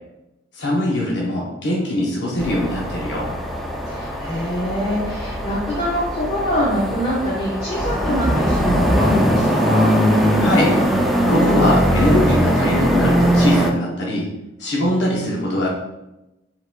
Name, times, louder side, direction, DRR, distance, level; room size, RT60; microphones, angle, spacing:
voice 1, 0.6-3.4 10.4-10.8 11.3-14.3 14.6-15.7, left 1 dB, 80° left, -3 dB, 0.7 m, -21 dB
sound 1, 2.4-13.7, equal, ahead, 0.4 m, -20 dB
voice 2, 3.9-9.9, equal, 40° left, -7 dB, 1.0 m, -24 dB
4.7 x 3.7 x 2.2 m, 0.94 s
head